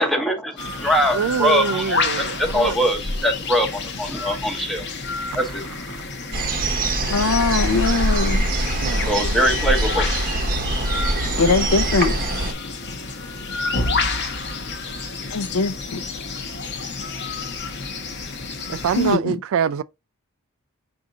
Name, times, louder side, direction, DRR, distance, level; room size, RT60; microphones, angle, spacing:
voice 1, 0.0-4.8 5.3-5.6 9.1-10.1, equal, ahead, 0.7 m, -22 dB
sound 1, 0.6-19.2, left 4 dB, 55° left, 0.8 m, -29 dB
voice 2, 1.1-2.8 5.3-5.5 5.9-6.1 8.8-9.1 18.7-19.8, right 7 dB, 65° right, 0.3 m, -25 dB
sound 2, 6.3-12.5, right 1 dB, 40° right, 0.8 m, -23 dB
voice 3, 7.1-8.4 11.3-12.2 15.3-16.0 19.0-19.4, left 4 dB, 80° left, 0.6 m, -21 dB
4.9 x 2.6 x 3.7 m
head